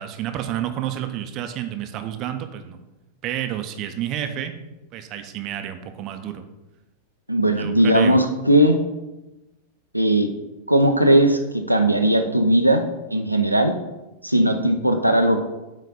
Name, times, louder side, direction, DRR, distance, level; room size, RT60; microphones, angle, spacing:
voice 1, 0.0-2.8 3.2-4.5 4.9-6.5 7.6-8.2, right 11 dB, 35° right, 7 dB, 0.7 m, -30 dB
voice 2, 7.3-8.8 9.9-10.3 10.7-12.8 13.1-13.7 14.2-15.4, right 1 dB, 90° right, 4 dB, 0.6 m, -18 dB
8.3 x 4.2 x 5.1 m, 1.0 s
figure-of-eight pair, 90°, 0 cm